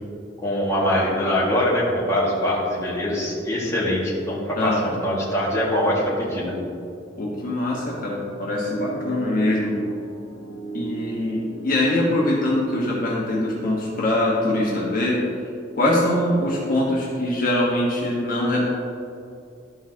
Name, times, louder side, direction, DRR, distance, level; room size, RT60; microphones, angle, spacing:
voice 1, 0.4-6.5, equal, 15° left, -7 dB, 2.0 m, -23 dB
voice 2, 4.6-5.0 7.2-9.7 10.7-15.2 15.7-18.7, left 1 dB, 50° left, -5 dB, 1.4 m, -23 dB
Piano, 8.7-13.7, right 2 dB, 80° left, 1.2 m, -34 dB
13.0 x 5.7 x 2.9 m, 2.6 s
head